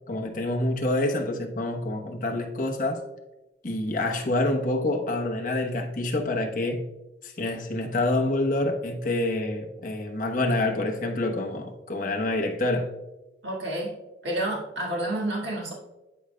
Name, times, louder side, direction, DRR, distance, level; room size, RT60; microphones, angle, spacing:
voice 1, 0.1-3.0 3.6-6.8 7.2-12.9, left 2 dB, 50° left, 1.0 m, -27 dB
voice 2, 13.4-14.0 14.2-15.7, right 1 dB, 90° right, 1.7 m, -29 dB
12.0 x 5.0 x 2.2 m
head